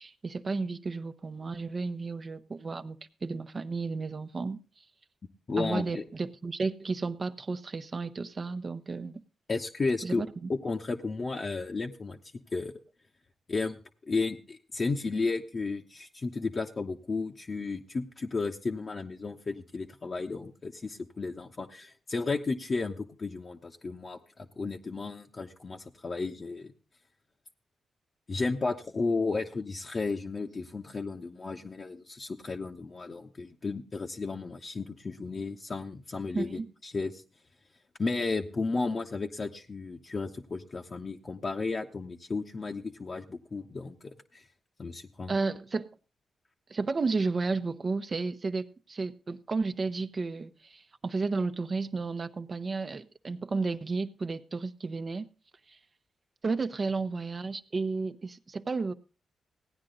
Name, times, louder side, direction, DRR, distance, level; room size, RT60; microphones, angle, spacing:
voice 1, 0.0-4.6 5.6-9.2 10.0-10.5 36.3-36.7 45.3-45.9 46.7-55.3 56.4-58.9, right 4 dB, 45° right, 0.8 m, -32 dB
voice 2, 5.5-6.0 9.5-10.2 10.5-12.2 12.5-12.7 13.5-26.7 28.3-37.2 38.0-44.4 44.8-45.3, left 3 dB, 45° left, 1.0 m, -33 dB
16.0 x 9.6 x 3.9 m
supercardioid pair, 55°, 0 cm